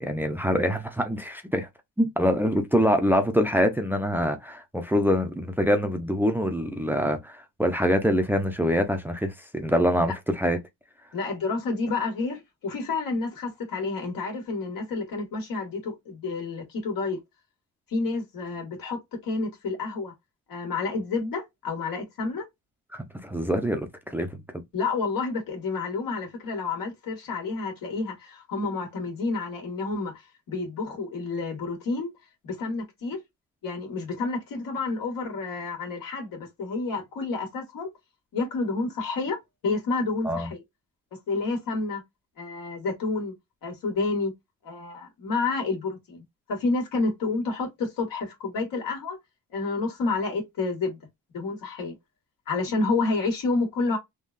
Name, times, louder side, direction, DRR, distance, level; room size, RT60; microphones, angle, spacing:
voice 1, 0.0-1.7 2.0-10.6 22.9-24.4 40.2-40.5, equal, 5° right, 0.6 m, -25 dB
voice 2, 11.1-17.2 17.9-20.1 20.5-22.5 24.7-30.2 30.5-32.1 32.4-33.2 33.6-37.9 38.3-40.6 41.3-42.0 42.4-43.3 43.6-44.3 44.6-46.2 46.5-49.2 49.5-51.0 51.3-51.9 52.5-54.0, left 3 dB, 70° left, 1.8 m, -29 dB
3.7 x 2.3 x 2.5 m
cardioid pair, 95°, 34 cm